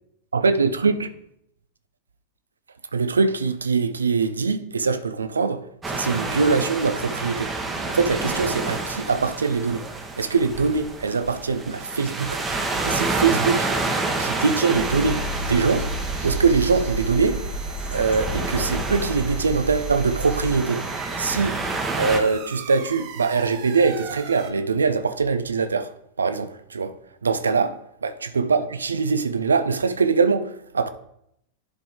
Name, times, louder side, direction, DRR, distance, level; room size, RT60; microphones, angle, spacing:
voice 1, 0.3-1.1 2.9-5.6 5.9-7.5 7.9-9.8 10.2-12.4 12.8-15.9 16.2-17.4 17.9-20.9 21.2-21.6 22.0-25.9 26.2-26.9 27.2-27.7 28.0-30.9, right 4 dB, 75° right, 0.5 m, -22 dB
sound 1, 5.8-22.2, right 3 dB, 15° right, 1.0 m, -29 dB
sound 2, 14.4-24.5, right 8 dB, 45° right, 0.9 m, -41 dB
sound 3, 14.7-20.5, right 1 dB, 75° left, 2.0 m, -31 dB
11.0 x 3.8 x 3.5 m
figure-of-eight pair, 90°, 0 cm